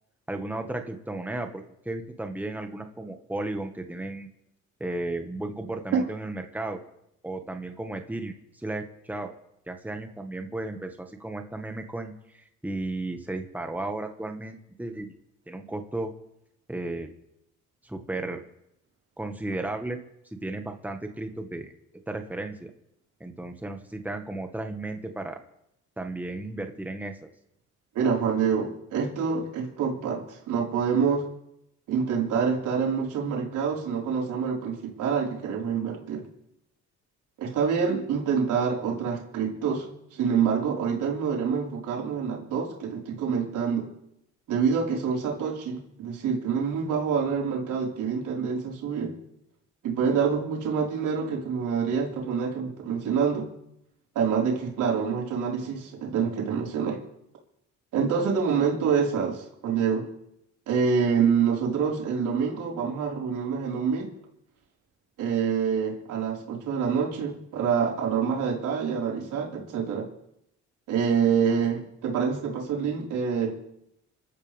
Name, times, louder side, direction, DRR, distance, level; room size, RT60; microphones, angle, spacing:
voice 1, 0.3-4.3 4.8-6.8 7.2-9.3 9.7-15.1 15.5-16.1 16.7-17.1 17.8-18.4 19.2-20.0 20.4-21.6 22.1-22.7 23.2-25.4 26.0-27.2, right 2 dB, 5° right, 4 dB, 1.8 m, -34 dB
voice 2, 27.9-31.3 31.9-36.3 37.4-43.9 44.5-49.1 49.8-53.5 54.1-57.0 57.9-60.1 60.7-64.1 65.2-70.1 70.9-73.6, right 6 dB, 85° right, -2 dB, 5.0 m, -26 dB
27.0 x 13.5 x 3.6 m, 0.79 s
cardioid pair, 90°, 30 cm